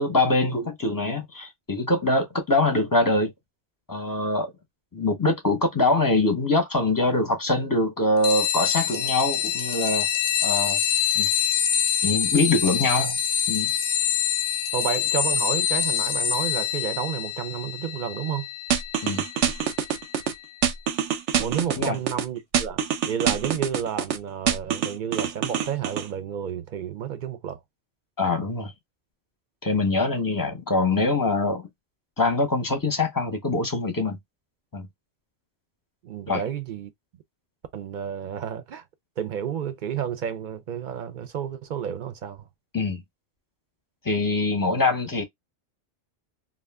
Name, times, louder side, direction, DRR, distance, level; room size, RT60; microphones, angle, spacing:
voice 1, 0.0-3.3 3.9-4.5 4.9-10.1 10.4-10.8 11.2-11.3 12.0-13.2 13.5-13.7 19.0-19.2 21.8-22.0 28.2-28.7 29.6-31.7 32.2-34.2 34.7-34.9 36.3-36.4 42.7-43.0 44.0-45.2, left 2 dB, 25° left, 0.5 m, -23 dB
sound 1, 8.2-20.3, left 9 dB, 90° left, 0.9 m, -26 dB
voice 2, 14.7-18.5 21.4-27.6 36.0-36.9 37.7-38.8 39.2-42.5, right 8 dB, 55° right, 0.6 m, -31 dB
sound 2, 18.7-20.3 20.6-22.2 22.5-24.2 24.5-26.1, right 9 dB, 90° right, 0.9 m, -25 dB
2.4 x 2.1 x 3.3 m
omnidirectional pair, 1.2 m